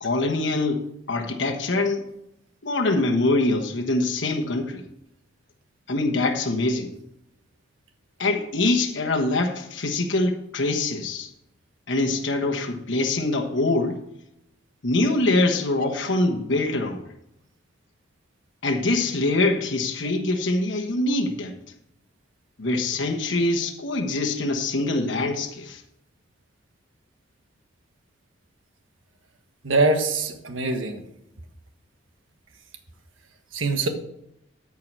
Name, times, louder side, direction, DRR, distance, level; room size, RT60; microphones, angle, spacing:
voice 1, 0.0-2.1 2.6-4.8 5.9-6.9 8.2-11.3 11.9-14.0 14.8-17.0 18.6-21.5 22.6-25.8, left 2 dB, 70° left, 1.2 m, -24 dB
voice 2, 29.6-31.0 33.5-33.9, right 3 dB, 80° right, 1.4 m, -23 dB
13.5 x 4.8 x 6.1 m
head